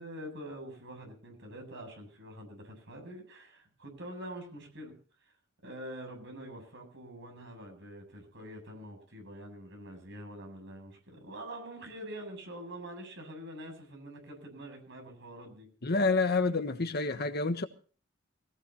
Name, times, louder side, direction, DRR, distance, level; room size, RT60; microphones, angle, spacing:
voice 1, 0.0-4.9 5.6-15.7, right 1 dB, 65° right, 4 dB, 8.0 m, -45 dB
voice 2, 15.8-17.6, left 3 dB, 50° left, 8 dB, 1.4 m, -28 dB
22.5 x 18.0 x 2.9 m, 0.40 s
head